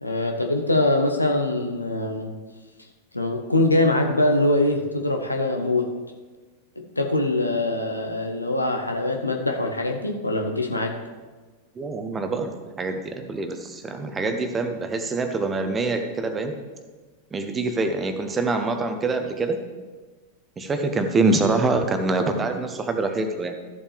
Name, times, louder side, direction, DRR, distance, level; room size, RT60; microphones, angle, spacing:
voice 1, 0.0-2.4 3.1-5.9 6.8-11.0, left 2 dB, 85° left, 3 dB, 1.0 m, -23 dB
voice 2, 11.8-16.5 17.3-19.6 20.6-23.5, right 3 dB, 20° right, 7 dB, 1.0 m, -25 dB
13.5 x 7.3 x 3.4 m, 1.3 s
figure-of-eight pair, 90°, 0 cm